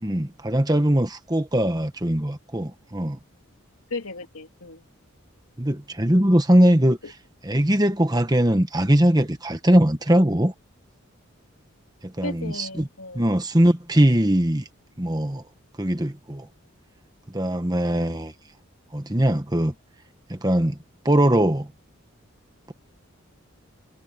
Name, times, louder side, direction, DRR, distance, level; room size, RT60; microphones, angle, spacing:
voice 1, 0.0-3.2 5.6-7.0 7.4-10.5 12.2-12.9 13.1-14.7 15.0-15.4 15.8-16.5 17.3-18.3 18.9-19.7 20.3-20.8 21.0-21.7, right 1 dB, 20° right, 1.3 m, -21 dB
voice 2, 3.9-4.8 7.0-7.1 12.2-13.3 17.9-18.1, left 2 dB, 90° left, 2.8 m, -35 dB
head